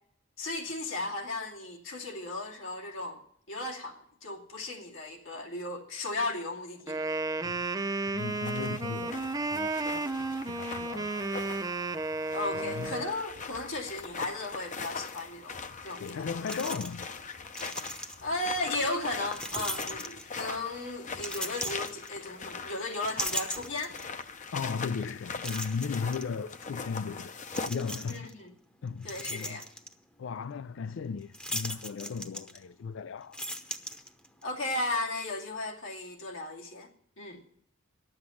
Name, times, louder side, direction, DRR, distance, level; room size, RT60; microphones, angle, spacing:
voice 1, 0.4-3.2 3.5-7.0 12.3-16.3 18.2-24.0 28.1-28.5 29.0-29.6 34.4-36.9 37.2-37.4, left 2 dB, 85° left, 2.4 m, -35 dB
Wind instrument woodwind instrument, 6.9-13.1, right 3 dB, 20° right, 0.5 m, -33 dB
voice 2, 8.0-11.3 12.5-13.0 16.0-17.1 24.5-27.4 27.7-28.3 28.8-29.6 30.2-33.4, left 5 dB, 70° left, 0.4 m, -36 dB
sound 1, 8.2-27.7, left 4 dB, 40° left, 0.8 m, -41 dB
sound 2, 15.9-16.0 16.5-17.2 17.4-18.4 19.3-20.6 21.1-22.5 22.9-24.2 24.7-24.8 25.4-26.2 27.5-28.3 28.8-29.9 31.3-32.9 33.2-34.4, equal, 5° left, 0.9 m, -38 dB
11.5 x 7.9 x 8.3 m
head